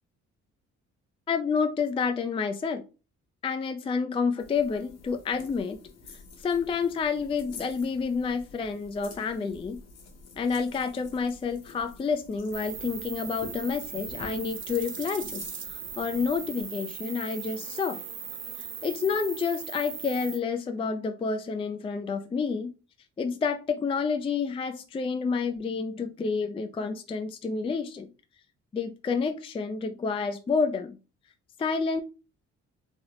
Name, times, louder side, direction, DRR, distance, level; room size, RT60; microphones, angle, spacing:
voice 1, 1.3-2.8 3.4-5.8 6.4-9.8 10.4-18.0 18.8-22.7 23.2-28.1 28.7-31.0 31.6-32.0, left 5 dB, 20° left, 7 dB, 0.3 m, -29 dB
sound 1, 4.4-16.7, left 4 dB, 55° left, 0.9 m, -49 dB
sound 2, 12.5-20.4, right 7 dB, 40° right, 0.6 m, -39 dB
3.3 x 2.0 x 3.7 m, 0.32 s
cardioid pair, 90°, 30 cm